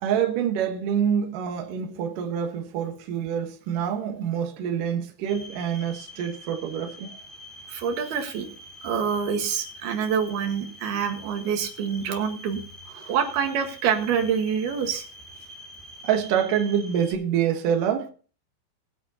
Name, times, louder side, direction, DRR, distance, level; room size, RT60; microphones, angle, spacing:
voice 1, 0.0-7.2 13.0-13.1 16.0-18.1, right 8 dB, 85° right, 1.9 m, -26 dB
sound 1, 5.3-17.1, left 1 dB, ahead, 2.6 m, -45 dB
voice 2, 7.7-8.5 8.8-12.6 13.1-15.0, right 7 dB, 60° right, 2.9 m, -26 dB
21.0 x 9.0 x 2.9 m
omnidirectional pair, 6.0 m